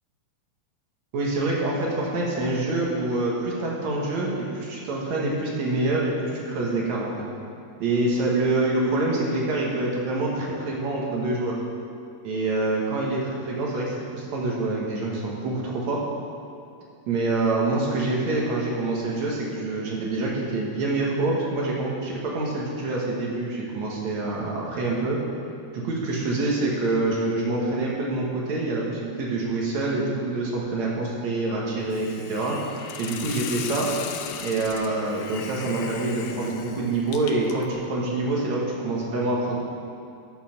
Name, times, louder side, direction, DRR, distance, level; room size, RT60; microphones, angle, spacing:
voice 1, 1.1-7.1 7.8-11.6 12.2-16.0 17.1-25.2 25.7-32.6 33.0-33.9 34.4-39.6, right 2 dB, 60° right, -3 dB, 2.3 m, -26 dB
Hiss, 31.9-37.7, left 8 dB, 80° left, 2.5 m, -37 dB
12.5 x 7.0 x 5.8 m, 2.5 s
omnidirectional pair, 4.4 m